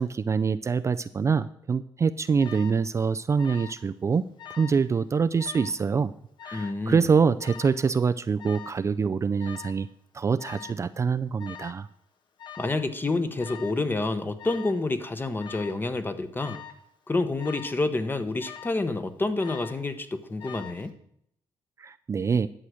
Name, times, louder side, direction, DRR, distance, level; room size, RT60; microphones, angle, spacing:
voice 1, 0.0-4.3 4.6-6.1 6.4-9.9 10.1-11.9 21.8-22.5, right 5 dB, 30° right, 11 dB, 0.4 m, -25 dB
Alarm, 2.4-2.8 3.4-3.9 4.1-4.8 5.4-5.8 6.4-6.8 7.4-7.8 8.4-8.8 9.4-9.8 10.4-10.8 11.4-11.8 12.4-12.8 13.4-13.8 14.4-14.8 15.4-15.8 16.4-16.8 17.4-17.8 18.4-18.9 19.4-19.9 20.4-20.9, left 9 dB, 55° left, 1.3 m, -44 dB
voice 2, 6.5-7.1 12.6-16.6 17.1-20.9, left 2 dB, 20° left, 10 dB, 1.0 m, -28 dB
11.5 x 6.4 x 6.3 m, 0.69 s
cardioid pair, 85°, 9 cm